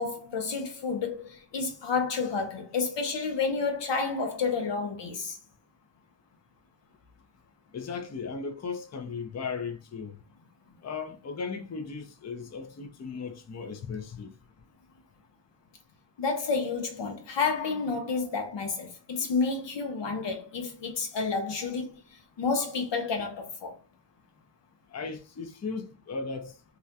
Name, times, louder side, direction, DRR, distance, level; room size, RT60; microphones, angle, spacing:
voice 1, 0.0-5.4 16.2-21.9 22.4-23.7, left 4 dB, 85° left, 0.7 m, -30 dB
voice 2, 7.7-10.2 10.8-14.3 24.9-26.5, left 5 dB, 40° left, 0.5 m, -36 dB
2.4 x 2.1 x 2.6 m
wide cardioid pair, 75°, 42 cm